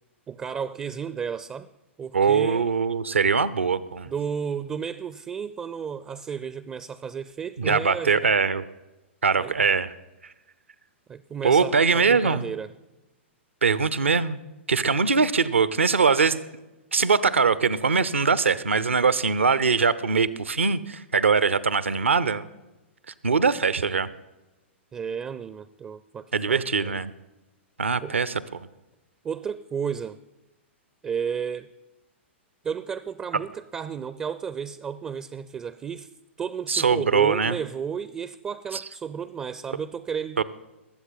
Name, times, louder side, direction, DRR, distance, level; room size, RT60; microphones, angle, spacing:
voice 1, 0.3-1.7 2.0-2.7 4.1-8.2 9.4-9.5 11.1-12.7 24.9-27.0 28.0-28.1 29.2-30.2 31.0-31.7 32.6-36.1 36.4-40.4, right 7 dB, 15° right, 15 dB, 0.4 m, -33 dB
voice 2, 2.1-4.1 7.6-8.6 9.2-9.9 11.4-12.5 13.6-14.4 14.7-16.4 16.9-22.5 23.2-24.1 26.3-27.1 27.8-28.7 36.7-37.6 38.7-38.8 40.4-40.5, right 5 dB, 75° right, 17 dB, 0.7 m, -22 dB
20.5 x 8.0 x 4.0 m, 1.0 s
figure-of-eight pair, 110°, 7 cm